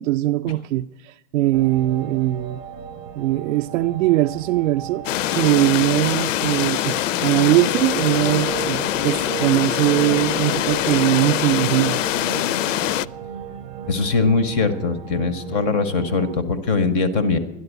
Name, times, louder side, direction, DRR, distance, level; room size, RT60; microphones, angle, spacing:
voice 1, 0.0-2.6 3.2-12.0, right 15 dB, 75° right, 0.5 m, -21 dB
sound 1, 1.5-16.4, right 8 dB, 35° right, 0.6 m, -35 dB
sound 2, 5.0-13.0, left 13 dB, 90° left, 0.5 m, -23 dB
voice 2, 13.9-17.4, left 4 dB, 15° left, 0.4 m, -21 dB
12.5 x 11.0 x 8.0 m
supercardioid pair, 165°, 37 cm